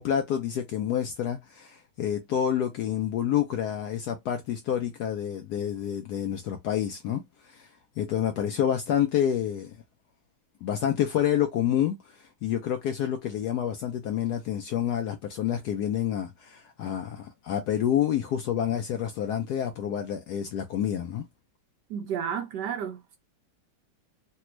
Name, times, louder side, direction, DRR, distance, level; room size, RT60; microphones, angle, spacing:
voice 1, 0.0-7.7 8.0-9.7 10.6-12.0 12.4-21.2, left 10 dB, 75° left, 0.9 m, -28 dB
voice 2, 21.9-23.2, right 8 dB, 70° right, 1.0 m, -32 dB
3.4 x 2.2 x 3.0 m
omnidirectional pair, 2.1 m